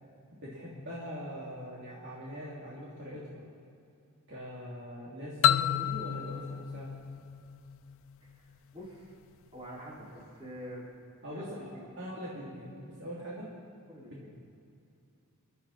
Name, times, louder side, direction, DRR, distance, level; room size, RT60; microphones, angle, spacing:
voice 1, 0.4-3.4 4.3-6.9 11.2-13.5 14.1-14.3, equal, 55° right, -7 dB, 3.1 m, -42 dB
sound 1, 5.4-8.1, left 10 dB, 60° left, 0.3 m, -29 dB
voice 2, 8.2-9.1 9.5-10.8 11.3-11.9 13.9-14.3, equal, 25° right, -7 dB, 5.1 m, -46 dB
29.5 x 11.5 x 4.3 m, 2.6 s
head